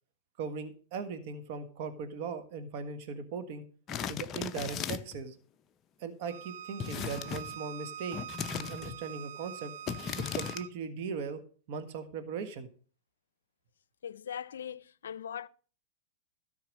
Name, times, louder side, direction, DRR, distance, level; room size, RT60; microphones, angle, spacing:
voice 1, 0.4-3.6 4.1-5.3 6.0-8.2 8.6-9.7 10.2-11.4 11.7-12.7, right 5 dB, 55° right, 1.5 m, -39 dB
sound 1, 3.9-5.2 6.8-7.6 8.1-9.0 9.9-10.6, left 8 dB, 30° left, 0.6 m, -37 dB
Bowed string instrument, 6.3-10.7, right 9 dB, 70° right, 0.5 m, -44 dB
voice 2, 14.0-15.5, left 8 dB, 90° left, 0.5 m, -40 dB
13.0 x 4.7 x 6.4 m
hypercardioid pair, 130°, 0 cm